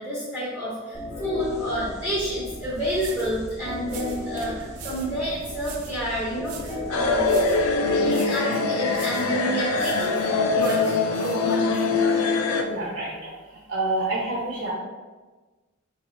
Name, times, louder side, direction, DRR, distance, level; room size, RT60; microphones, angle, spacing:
voice 1, 0.0-7.4 8.0-10.9 11.2-11.8, equal, ahead, -8 dB, 0.8 m, -29 dB
sound 1, 0.9-8.6, left 1 dB, 30° left, 0.8 m, -36 dB
sound 2, 2.5-2.6 2.9-3.4 3.9-5.2 5.6-6.0 6.4-6.9 7.2-7.7 8.1-8.5 8.9-9.3 9.7-10.2 10.6-11.9, right 6 dB, 80° right, 0.5 m, -43 dB
sound 3, 6.9-12.6, left 3 dB, 70° left, 0.4 m, -23 dB
voice 2, 12.6-13.3 13.7-14.7, right 2 dB, 55° right, -7 dB, 0.9 m, -28 dB
3.1 x 2.8 x 4.3 m, 1.3 s
head